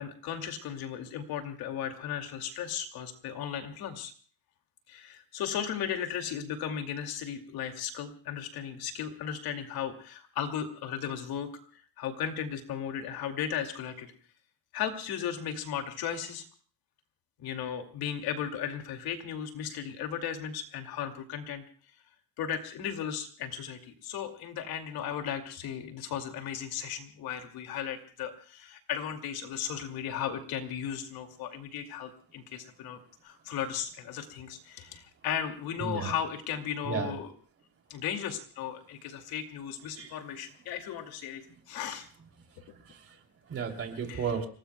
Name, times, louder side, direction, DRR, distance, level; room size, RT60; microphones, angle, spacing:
voice 1, 0.0-4.1 4.9-14.1 14.7-16.4 17.4-21.6 22.4-37.3 37.9-42.1 44.1-44.2, left 9 dB, 55° left, 5 dB, 2.5 m, -36 dB
voice 2, 35.8-36.1 36.8-37.1 39.9-40.2 42.5-44.5, right 6 dB, 30° right, 3 dB, 3.0 m, -35 dB
30.0 x 18.5 x 2.3 m, 0.43 s
cardioid pair, 155°, 44 cm